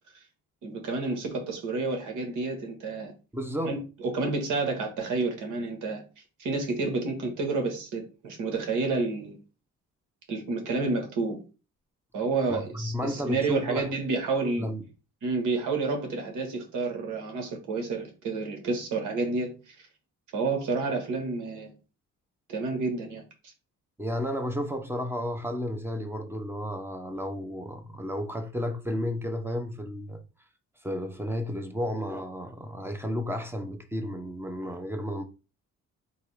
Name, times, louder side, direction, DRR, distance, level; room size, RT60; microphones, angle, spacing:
voice 1, 0.6-3.1 3.7-3.8 4.0-6.0 6.4-9.4 10.3-11.4 12.1-14.7 15.2-19.8 20.3-21.7 22.5-23.2, right 3 dB, 85° right, 1.6 m, -29 dB
voice 2, 3.3-3.8 12.5-13.9 14.6-14.8 24.0-30.2 30.8-35.2, equal, 10° right, 0.9 m, -32 dB
3.9 x 2.8 x 4.9 m
cardioid pair, 90°, 30 cm